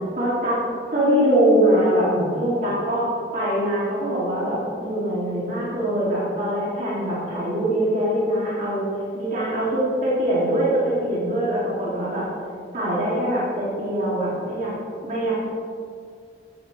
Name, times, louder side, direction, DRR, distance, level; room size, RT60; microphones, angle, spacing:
voice 1, 0.2-0.6 0.9-3.1 3.3-8.8 9.1-12.2 12.7-14.7 15.0-15.5, right 1 dB, 50° right, -9 dB, 2.8 m, -22 dB
14.0 x 9.1 x 3.4 m, 2.3 s
head